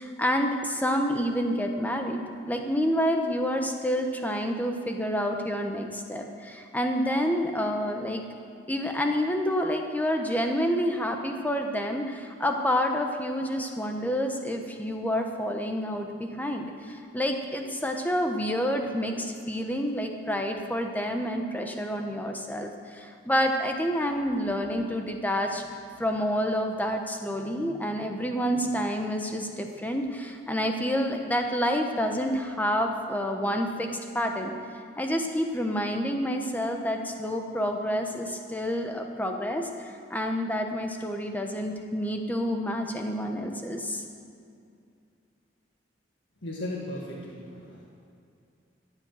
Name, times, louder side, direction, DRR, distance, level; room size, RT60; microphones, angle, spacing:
voice 1, 0.0-8.2 8.7-25.6 26.0-33.9 34.1-34.5 35.0-44.0, equal, 10° left, 3 dB, 1.1 m, -28 dB
voice 2, 46.4-47.9, left 1 dB, 90° left, -3 dB, 1.7 m, -36 dB
14.0 x 9.0 x 7.6 m, 2.4 s
head